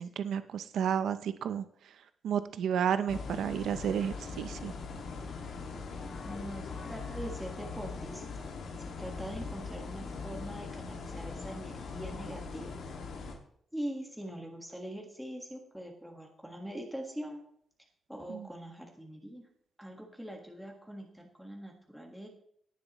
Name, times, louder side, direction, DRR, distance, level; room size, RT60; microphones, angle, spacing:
voice 1, 0.0-4.7 18.3-18.5, right 8 dB, 80° right, 11 dB, 0.6 m, -32 dB
sound 1, 3.1-13.4, left 4 dB, 80° left, 2.0 m, -41 dB
sound 2, 5.9-8.8, left 3 dB, 55° left, 3.5 m, -52 dB
voice 2, 6.2-8.4 9.0-12.8 13.7-17.4 18.1-19.4 19.8-22.3, right 1 dB, ahead, 0 dB, 1.5 m, -42 dB
18.0 x 7.3 x 3.1 m, 0.65 s
wide cardioid pair, 145°, 0 cm